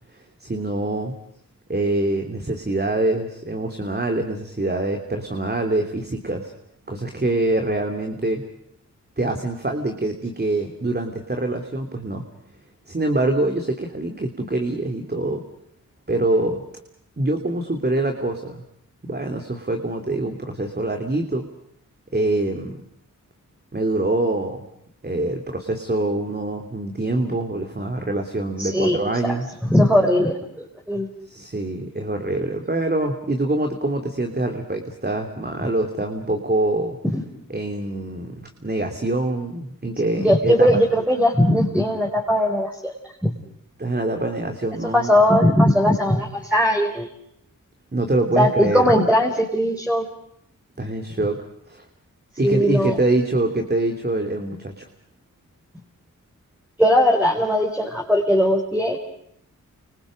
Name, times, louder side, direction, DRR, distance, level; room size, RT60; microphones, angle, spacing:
voice 1, 0.4-1.1 1.7-6.5 6.9-8.4 9.2-12.2 12.9-15.4 16.1-16.7 17.2-18.6 19.0-21.5 22.1-22.8 23.7-24.7 25.0-29.5 31.3-37.0 37.5-40.8 43.8-45.1 47.9-48.9 50.8-51.9 52.4-54.9, right 2 dB, 30° right, 4 dB, 3.1 m, -24 dB
voice 2, 28.6-31.1 37.1-37.2 40.2-42.9 43.2-43.4 44.9-47.1 48.4-50.1 52.4-53.0 56.8-59.0, equal, 5° right, -1 dB, 5.0 m, -19 dB
29.5 x 27.0 x 5.2 m, 0.72 s
cardioid pair, 55°, 33 cm